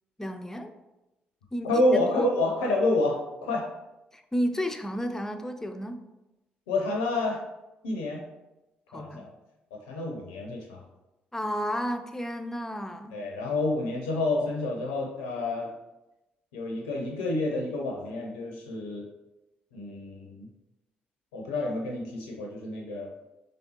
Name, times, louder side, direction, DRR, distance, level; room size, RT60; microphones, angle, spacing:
voice 1, 0.2-0.7 1.5-2.3 4.1-6.0 8.9-9.3 11.3-13.2, equal, 10° left, 7 dB, 0.4 m, -32 dB
voice 2, 1.7-3.7 6.7-7.4 7.8-8.3 8.9-9.3 9.9-10.8 13.1-15.7 16.5-19.0 19.7-20.5 21.3-23.2, left 2 dB, 75° left, 0 dB, 0.5 m, -28 dB
4.0 x 3.3 x 2.9 m, 0.99 s
figure-of-eight pair, 40°, 5 cm